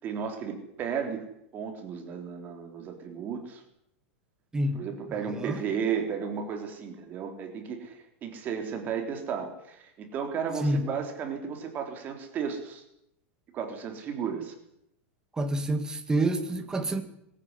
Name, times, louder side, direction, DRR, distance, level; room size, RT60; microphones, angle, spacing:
voice 1, 0.0-1.2 1.5-3.6 4.7-12.8 13.5-14.5, right 7 dB, 25° right, 3.6 m, -34 dB
voice 2, 4.5-4.9 5.3-5.6 10.6-10.8 15.4-17.0, right 1 dB, 10° right, 2.1 m, -28 dB
22.5 x 14.5 x 9.8 m
supercardioid pair, 160°, 7 cm